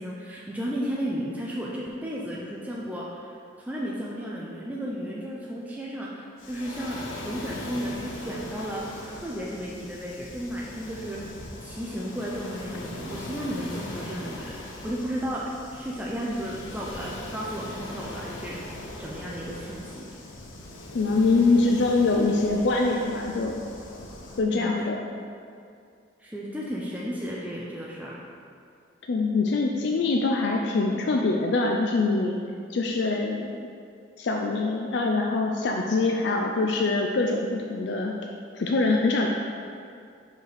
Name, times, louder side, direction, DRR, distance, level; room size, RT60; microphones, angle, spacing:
voice 1, 0.0-3.3 3.6-14.6 14.8-18.6 18.9-20.1 24.4-24.7 26.2-28.2, equal, 10° right, -5 dB, 0.4 m, -34 dB
Waves surf, 6.4-24.4, left 1 dB, 75° left, 0.7 m, -40 dB
voice 2, 20.9-23.6 24.4-25.0 29.1-32.4 32.7-33.7 34.2-38.1 38.5-39.3, left 3 dB, 55° left, 1 dB, 0.4 m, -24 dB
5.1 x 5.0 x 4.0 m, 2.4 s
head